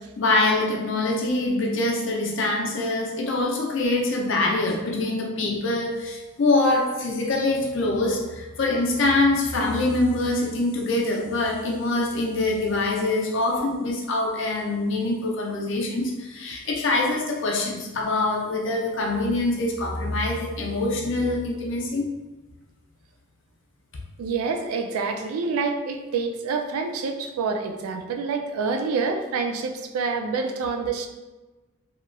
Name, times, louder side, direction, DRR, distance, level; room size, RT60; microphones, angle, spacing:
voice 1, 0.2-22.1, left 2 dB, 55° left, -1 dB, 0.5 m, -24 dB
voice 2, 24.2-31.1, right 4 dB, 85° right, 5 dB, 0.3 m, -27 dB
2.9 x 2.3 x 2.4 m, 1.1 s
head